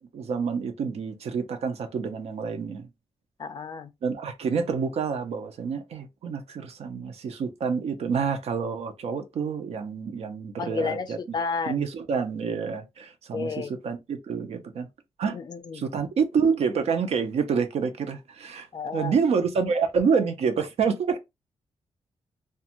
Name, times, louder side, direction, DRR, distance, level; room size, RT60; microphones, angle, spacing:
voice 1, 0.1-2.9 4.0-11.4 11.7-14.9 15.2-15.4 15.7-18.7 18.9-21.2, right 6 dB, 70° right, 0.6 m, -28 dB
voice 2, 3.4-3.9 10.6-11.9 13.3-13.7 15.3-15.8 18.7-19.1, left 4 dB, 40° left, 0.4 m, -31 dB
2.5 x 2.3 x 2.8 m
wide cardioid pair, 150°, 11 cm